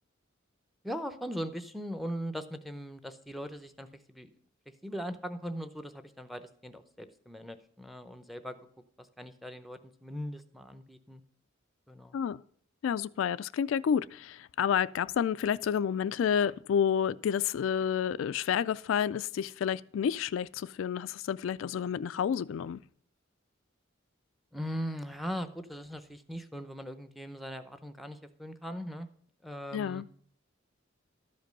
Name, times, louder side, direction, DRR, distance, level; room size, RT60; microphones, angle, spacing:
voice 1, 0.8-4.3 4.8-8.6 9.0-11.2 11.9-12.2 24.5-29.1 29.4-30.0, equal, ahead, 0.6 m, -40 dB
voice 2, 12.8-22.8 29.7-30.0, left 8 dB, 75° left, 0.3 m, -30 dB
12.5 x 5.2 x 5.3 m
head